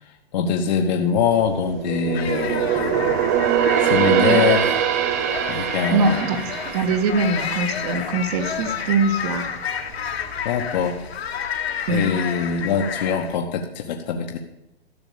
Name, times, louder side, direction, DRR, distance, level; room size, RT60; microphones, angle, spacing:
voice 1, 0.3-3.2 3.8-4.7 5.5-6.2 10.4-11.0 11.9-14.4, left 6 dB, 45° left, 2 dB, 1.2 m, -23 dB
sound 1, 1.1-8.7 9.0-9.3 9.8-10.5 10.8-10.9, right 8 dB, 15° right, 0.4 m, -23 dB
sound 2, 2.1-13.4, left 7 dB, 75° left, 1.8 m, -31 dB
voice 2, 5.9-9.6 11.9-12.1, right 3 dB, 40° right, 8 dB, 1.6 m, -23 dB
13.0 x 5.9 x 8.5 m, 0.87 s
hypercardioid pair, 145°, 32 cm